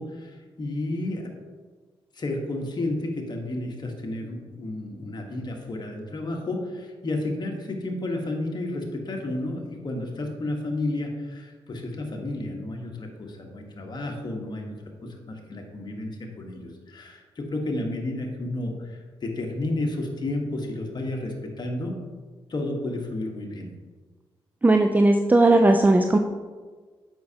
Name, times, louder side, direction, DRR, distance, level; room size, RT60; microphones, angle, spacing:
voice 1, 0.0-1.3 2.1-14.7 15.0-22.0 22.5-23.7, left 2 dB, 45° left, 1 dB, 1.3 m, -31 dB
voice 2, 24.6-26.2, right 2 dB, 15° right, 4 dB, 0.4 m, -17 dB
7.6 x 5.4 x 2.8 m, 1.4 s
cardioid pair, 65°, 10 cm